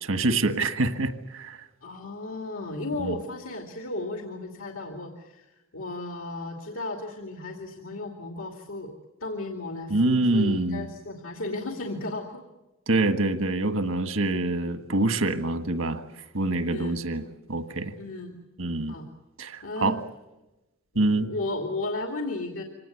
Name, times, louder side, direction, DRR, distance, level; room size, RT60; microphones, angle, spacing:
voice 1, 0.0-1.6 3.0-3.2 9.9-10.9 12.9-16.0 16.3-17.2 17.5-17.9 18.6-19.0 19.4-20.0 20.9-21.3, right 2 dB, 75° right, 9 dB, 1.6 m, -25 dB
voice 2, 1.8-5.5 5.7-8.9 9.2-12.4 16.7-17.0 18.0-18.4 18.9-19.1 19.6-20.0 20.9-22.6, left 2 dB, 80° left, 2 dB, 2.5 m, -34 dB
25.5 x 18.5 x 9.3 m, 1.0 s
head